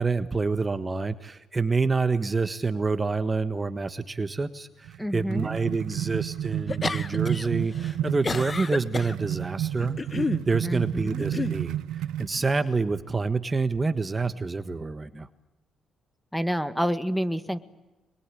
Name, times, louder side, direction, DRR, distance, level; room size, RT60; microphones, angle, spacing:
voice 1, 0.0-10.0 10.5-15.3, right 4 dB, 25° right, 12 dB, 1.4 m, -27 dB
sound 1, 4.8-12.4, right 11 dB, 90° right, 1.0 m, -31 dB
voice 2, 5.0-5.5 10.6-11.2 16.3-17.6, equal, ahead, 12 dB, 1.7 m, -28 dB
sound 2, 6.7-7.5 7.8-9.2 9.8-10.5 11.2-11.6, left 3 dB, 30° left, 1.3 m, -30 dB
26.5 x 22.0 x 10.0 m, 1.1 s
cardioid pair, 90°, 0 cm